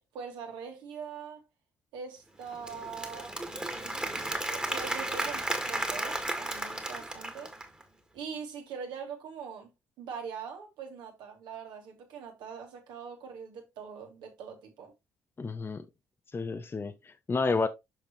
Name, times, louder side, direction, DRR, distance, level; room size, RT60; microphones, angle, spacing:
voice 1, 0.1-1.4 1.9-7.5 8.1-9.7 10.0-14.9, right 6 dB, 65° right, 2.1 m, -42 dB
Applause / Crowd, 2.4-7.8, right 1 dB, 10° right, 1.9 m, -34 dB
voice 2, 15.4-15.8 16.3-17.7, left 4 dB, 30° left, 0.7 m, -30 dB
6.5 x 6.2 x 3.1 m
figure-of-eight pair, 45°, 8 cm